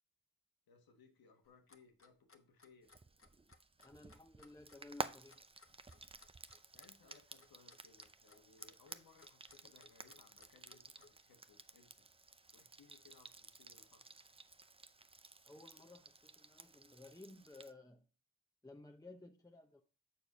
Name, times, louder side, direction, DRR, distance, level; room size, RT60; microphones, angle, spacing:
voice 1, 0.7-2.9 6.7-12.1 12.5-14.1, left 4 dB, 90° left, 1.4 m, -66 dB
Clock, 1.4-11.1, left 3 dB, 40° left, 1.1 m, -64 dB
Frying (food), 2.9-17.7, right 3 dB, 15° right, 0.5 m, -53 dB
voice 2, 3.8-5.4 15.4-18.1 18.6-19.8, left 2 dB, 10° left, 0.8 m, -56 dB
7.0 x 4.5 x 5.4 m
cardioid pair, 50°, 35 cm